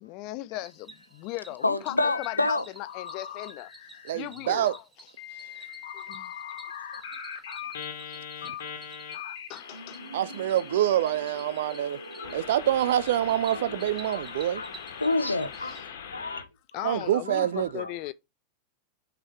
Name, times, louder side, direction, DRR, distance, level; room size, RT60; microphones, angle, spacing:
voice 1, 0.0-3.7 4.1-4.7 5.6-6.3 8.1-8.2 9.5-10.0 15.6-15.8 16.7-18.1, left 17 dB, 40° left, 0.5 m, -38 dB
Cricket, 0.6-15.8, right 3 dB, 15° right, 2.0 m, -51 dB
voice 2, 1.6-2.6 7.6-7.7 8.6-8.7 13.5-13.6 14.1-14.7 15.0-15.8 16.1-16.5 16.7-16.9 17.3-17.9, left 2 dB, 85° left, 0.8 m, -29 dB
sound 1, 2.0-2.5 2.8-4.2 4.4-4.8 5.2-16.4, left 8 dB, 60° left, 1.4 m, -41 dB
voice 3, 4.0-4.7 10.1-12.0 12.3-14.6 16.8-17.8, right 12 dB, 55° right, 0.3 m, -26 dB
sound 2, 9.7-14.0, right 2 dB, 80° right, 1.1 m, -44 dB
6.2 x 6.0 x 3.3 m
figure-of-eight pair, 90°, 0 cm